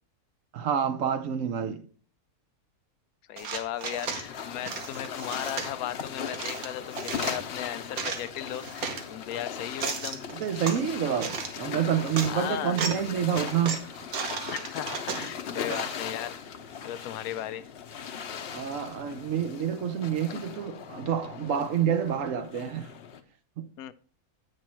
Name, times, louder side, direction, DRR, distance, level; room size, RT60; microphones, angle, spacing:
voice 1, 0.5-1.9 10.3-13.8 18.5-22.9 23.6-23.7, right 8 dB, 65° right, 1.2 m, -28 dB
voice 2, 3.3-10.3 12.2-12.8 14.5-17.7 23.8-23.9, left 12 dB, 90° left, 1.1 m, -36 dB
sound 1, 3.4-4.3 4.7-5.7 6.3-7.4 7.8-9.0 9.6-10.8 11.2-11.6 12.0-12.3 12.7-13.1 13.3-16.0, right 5 dB, 85° right, 1.6 m, -35 dB
sound 2, 4.0-23.2, left 7 dB, 55° left, 0.9 m, -39 dB
8.5 x 6.5 x 4.5 m
omnidirectional pair, 1.5 m